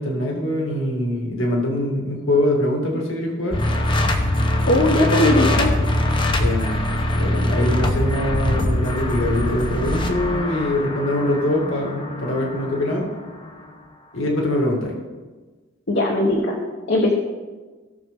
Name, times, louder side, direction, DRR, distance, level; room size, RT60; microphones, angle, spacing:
voice 1, 0.0-3.6 6.4-6.8 7.1-13.0 14.1-14.9, left 1 dB, 75° left, 0 dB, 2.1 m, -23 dB
sound 1, 3.5-13.5, left 1 dB, 25° left, 0.9 m, -22 dB
voice 2, 4.7-5.7 15.9-16.6 16.9-17.1, left 1 dB, 55° left, -1 dB, 1.2 m, -18 dB
16.5 x 6.5 x 3.7 m, 1.3 s
head